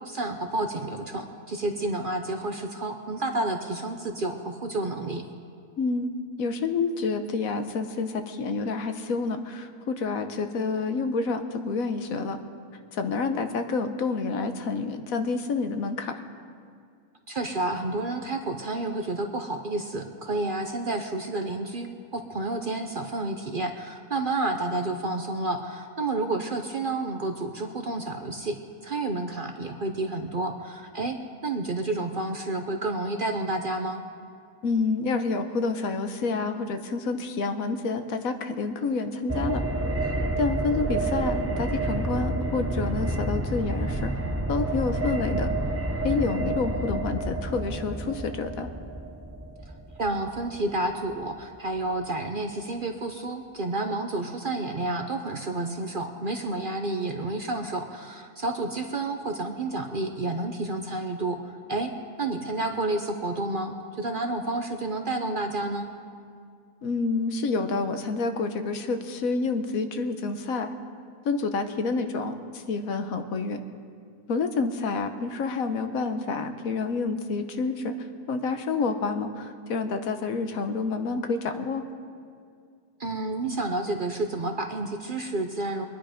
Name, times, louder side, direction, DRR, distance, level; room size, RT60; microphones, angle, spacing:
voice 1, 0.0-5.2 17.3-31.2 31.4-34.0 50.0-61.9 62.2-65.9 83.0-85.9, right 2 dB, 45° right, 5 dB, 0.8 m, -30 dB
voice 2, 5.8-6.1 6.4-12.4 12.9-16.2 34.6-39.6 40.4-44.1 44.5-45.5 46.0-48.7 66.8-70.7 71.2-73.6 74.3-77.9 78.3-81.8, left 4 dB, 70° left, 8 dB, 1.3 m, -28 dB
sound 1, 39.3-51.1 51.4-51.5, right 2 dB, 20° right, 0.4 m, -29 dB
23.0 x 10.0 x 5.1 m, 2.2 s
omnidirectional pair, 1.6 m